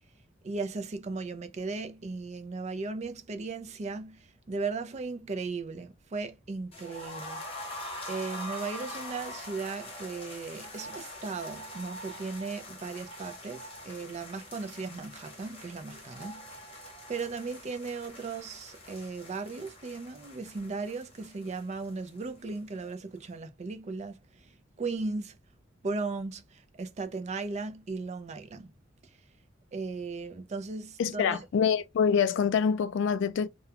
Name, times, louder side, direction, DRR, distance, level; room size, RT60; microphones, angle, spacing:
voice 1, 0.4-7.4 8.1-25.4 25.8-28.7 29.7-31.5, right 4 dB, 35° right, 0.4 m, -37 dB
sound 1, 6.7-22.6 22.8-22.9 23.2-23.3, left 1 dB, 30° left, 0.8 m, -44 dB
voice 2, 31.0-33.5, left 6 dB, 65° left, 0.3 m, -26 dB
2.4 x 2.1 x 2.8 m
head